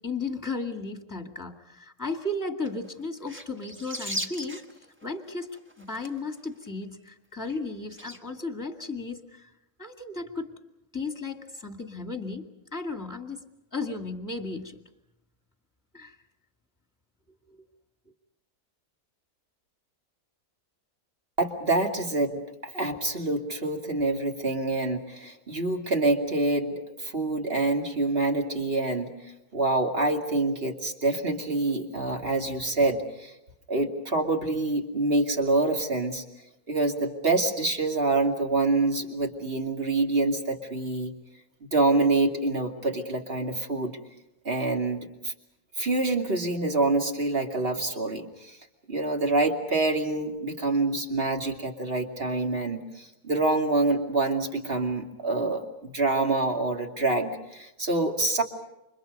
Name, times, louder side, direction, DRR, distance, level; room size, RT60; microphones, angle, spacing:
voice 1, 0.0-4.6 5.0-5.5 5.8-9.5 9.8-10.5 10.9-12.5 12.7-13.4 13.7-14.8 15.9-16.2, left 3 dB, 10° left, 5 dB, 2.1 m, -34 dB
sound 1, 2.6-2.9 3.2-6.4 6.7-6.8 7.1-7.2 7.5-7.6 7.9-8.2, equal, 10° right, 1.4 m, -37 dB
voice 2, 21.4-26.7 27.0-29.1 29.5-33.3 33.7-36.2 36.7-41.1 41.7-44.0 44.4-45.3 45.8-48.6 48.9-58.4, right 2 dB, 40° right, 3 dB, 2.7 m, -26 dB
29.5 x 26.0 x 5.4 m, 0.90 s
omnidirectional pair, 1.6 m